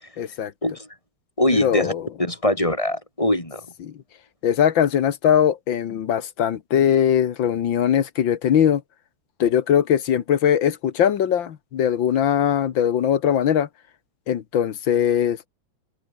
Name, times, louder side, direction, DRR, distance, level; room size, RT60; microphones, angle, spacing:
voice 1, 0.2-0.5 1.5-2.0 3.8-3.9 4.4-8.8 9.4-13.7 14.3-15.4, left 9 dB, 65° left, 1.9 m, -20 dB
voice 2, 1.4-1.9 2.2-3.6, left 1 dB, 15° left, 6.2 m, -22 dB
omnidirectional pair, 2.3 m